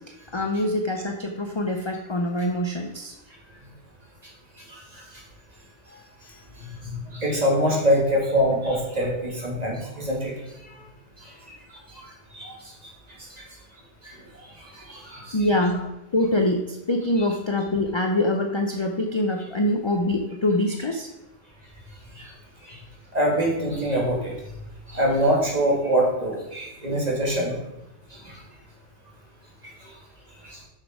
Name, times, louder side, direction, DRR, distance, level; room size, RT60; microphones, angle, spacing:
voice 1, 0.3-3.1 15.3-15.9 16.1-21.1, left 1 dB, 40° left, 3 dB, 0.4 m, -24 dB
voice 2, 4.7-5.0 6.6-10.3 11.2-11.3 11.9-12.0 12.3-12.5 13.3-13.4 14.0-14.2 14.6-15.4 22.2-22.3 22.6-22.8 23.1-24.3 24.9-27.5 28.2-28.4 29.6-29.7 30.4-30.6, equal, 30° right, -3 dB, 2.1 m, -24 dB
6.4 x 6.2 x 4.8 m, 0.93 s
omnidirectional pair, 1.4 m